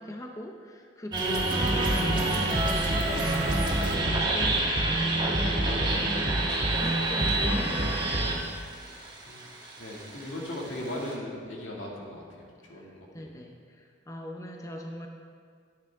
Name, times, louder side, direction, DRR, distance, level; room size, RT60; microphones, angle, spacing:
voice 1, 0.0-8.4 12.7-15.1, left 1 dB, 15° left, 2 dB, 0.6 m, -42 dB
sound 1, 1.1-11.1, right 2 dB, 25° right, 1.6 m, -29 dB
sound 2, 1.3-8.4, right 1 dB, 55° right, 2.2 m, -29 dB
voice 2, 9.8-12.2 12.7-13.1, left 1 dB, 80° left, -2 dB, 2.1 m, -37 dB
13.5 x 9.2 x 3.6 m, 2.1 s
head